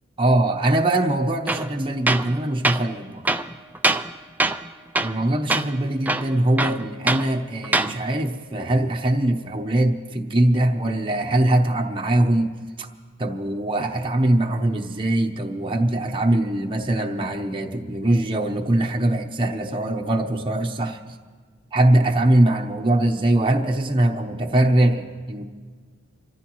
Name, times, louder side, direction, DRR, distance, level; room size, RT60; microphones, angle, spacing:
voice 1, 0.2-3.3 5.0-12.9 13.2-21.2 21.7-25.4, right 1 dB, 25° right, 1 dB, 0.8 m, -22 dB
Tools, 1.5-1.7 2.1-2.3 2.6-2.8 3.2-4.1 4.4-4.7 4.9-5.2 5.5-5.7 6.0-7.3 7.6-7.9, right 2 dB, 10° right, 0.4 m, -23 dB
26.5 x 14.0 x 3.1 m, 1.5 s
head